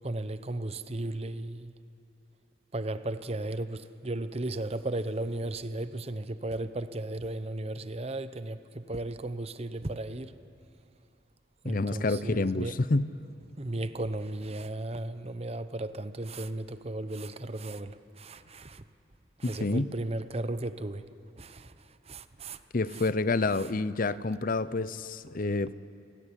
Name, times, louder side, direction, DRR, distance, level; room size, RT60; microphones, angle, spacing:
voice 1, 0.0-1.7 2.7-10.3 11.6-12.9 13.6-18.8 19.4-21.1 21.4-22.6 22.9-23.1 23.5-23.7, right 2 dB, 30° right, 0.8 m, -35 dB
voice 2, 11.6-13.1 19.4-19.9 22.7-25.7, left 3 dB, 45° left, 0.6 m, -28 dB
27.0 x 17.0 x 10.0 m
head